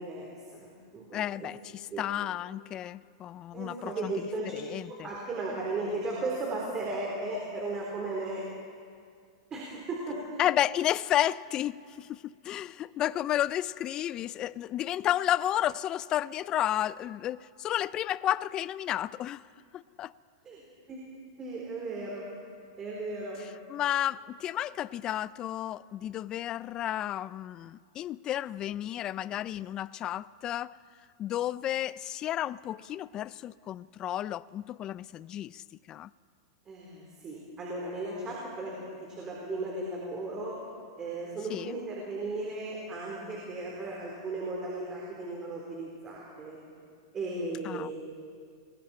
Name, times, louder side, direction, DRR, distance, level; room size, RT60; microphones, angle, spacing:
voice 1, 0.0-1.5 1.9-2.1 3.5-4.6 4.9-8.4 9.5-10.4 20.4-20.6 20.9-21.0 21.4-22.3 22.8-23.4 36.7-40.6 41.0-46.6 47.1-47.9, right 2 dB, 25° right, 4.1 m, -36 dB
voice 2, 1.1-4.1 4.5-5.1 10.4-19.4 19.7-20.1 23.7-30.8 31.2-36.1 41.5-41.8 47.6-47.9, left 12 dB, 30° left, 0.4 m, -32 dB
30.0 x 21.5 x 4.5 m
hypercardioid pair, 140°, 3 cm